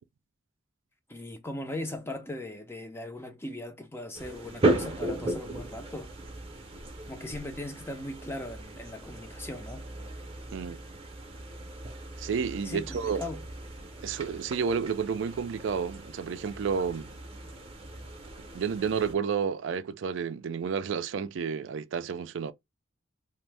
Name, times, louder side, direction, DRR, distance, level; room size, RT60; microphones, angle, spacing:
voice 1, 1.1-6.1 7.0-9.9 12.6-13.4, left 1 dB, 10° left, 0.5 m, -39 dB
sound 1, 4.1-19.1, right 2 dB, 30° right, 0.6 m, -36 dB
voice 2, 10.5-10.8 12.2-13.2 14.0-17.1 18.5-22.5, right 6 dB, 75° right, 0.3 m, -31 dB
2.6 x 2.1 x 3.2 m
head